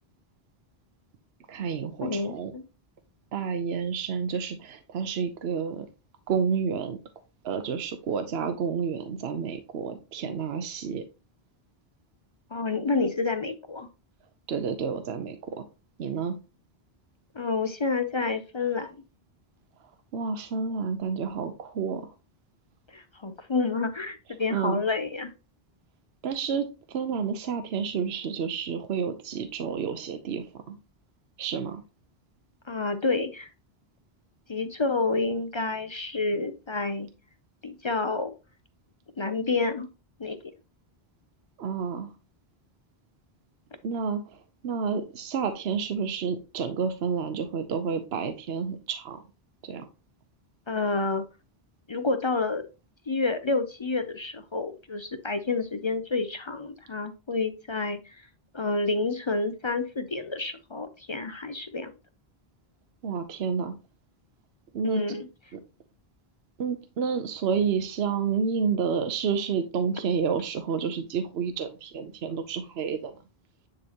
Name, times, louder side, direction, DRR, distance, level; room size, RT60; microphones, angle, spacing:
voice 1, 1.5-2.5 3.3-5.9 6.3-7.0 7.4-11.0 14.5-15.6 16.0-16.4 20.1-22.1 24.5-24.8 26.2-30.8 31.4-31.8 41.6-42.1 43.8-49.2 49.6-49.9 63.0-63.7 64.7-65.0 65.5-65.6 66.6-73.1, right 6 dB, 80° right, 0.9 m, -30 dB
voice 2, 2.0-2.6 12.5-13.9 17.3-19.0 22.9-25.3 32.7-33.5 34.5-37.1 37.6-38.3 39.2-39.9 40.2-40.4 50.7-51.3 51.9-52.7 53.1-58.3 58.5-61.9 64.8-65.3, left 3 dB, 35° left, 0.5 m, -29 dB
9.7 x 4.0 x 2.9 m
omnidirectional pair, 1.1 m